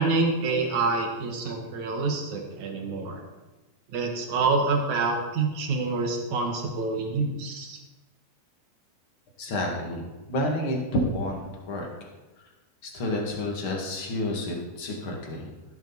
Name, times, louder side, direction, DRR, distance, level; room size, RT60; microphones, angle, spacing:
voice 1, 0.0-3.2 3.9-7.8, right 3 dB, 65° right, 2 dB, 1.8 m, -27 dB
voice 2, 9.4-11.4 11.7-11.9 12.8-15.5, left 1 dB, 45° left, 0 dB, 1.8 m, -29 dB
15.5 x 10.5 x 4.0 m, 1.1 s
omnidirectional pair, 5.3 m